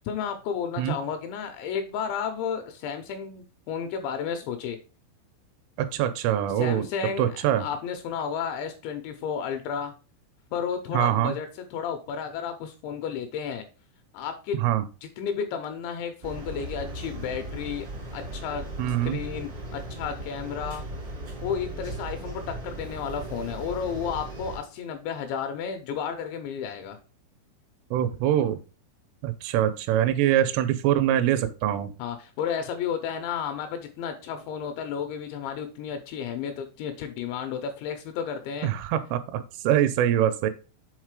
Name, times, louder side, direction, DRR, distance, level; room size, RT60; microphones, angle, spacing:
voice 1, 0.1-4.8 6.6-9.9 10.5-13.6 14.1-14.6 15.0-17.9 18.1-20.9 21.4-27.0 32.0-38.7, left 7 dB, 80° left, 6 dB, 2.8 m, -32 dB
voice 2, 5.8-6.9 7.2-7.7 10.9-11.3 14.6-14.8 18.8-19.2 27.9-28.6 29.2-31.9 38.6-40.5, right 11 dB, 85° right, 11 dB, 3.1 m, -24 dB
sound 1, 16.2-24.6, right 1 dB, 65° right, 1.0 m, -37 dB
7.4 x 4.0 x 4.7 m, 0.34 s
omnidirectional pair, 5.8 m